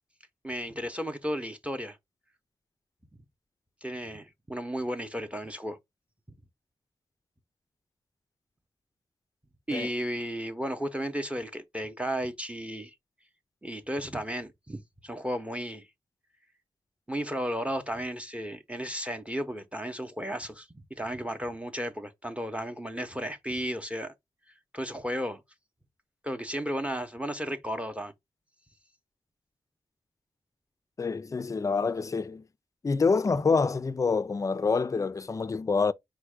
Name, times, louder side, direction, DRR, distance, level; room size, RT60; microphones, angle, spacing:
voice 1, 0.4-2.0 3.8-5.8 9.7-12.9 13.6-15.8 17.1-24.1 24.7-25.4 26.2-28.1, equal, 10° right, 0.6 m, -34 dB
voice 2, 31.0-32.4 32.8-35.9, left 4 dB, 30° left, 0.3 m, -27 dB
4.5 x 2.1 x 4.7 m
wide cardioid pair, 75°, 12 cm